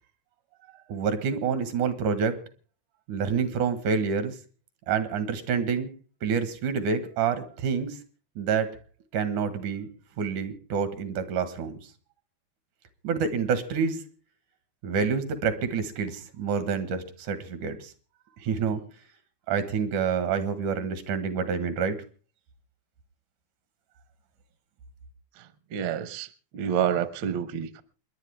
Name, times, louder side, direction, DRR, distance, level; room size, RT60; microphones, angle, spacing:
voice 1, 0.9-2.4 3.1-4.4 4.9-5.9 6.2-8.0 8.4-8.8 9.1-9.9 10.2-11.8 13.0-14.0 14.8-17.9 18.4-18.8 19.5-22.0, right 6 dB, 85° right, 10 dB, 2.9 m, -27 dB
voice 2, 25.4-27.8, right 9 dB, 65° right, 13 dB, 1.2 m, -29 dB
28.0 x 11.0 x 3.4 m, 0.36 s
omnidirectional pair, 3.4 m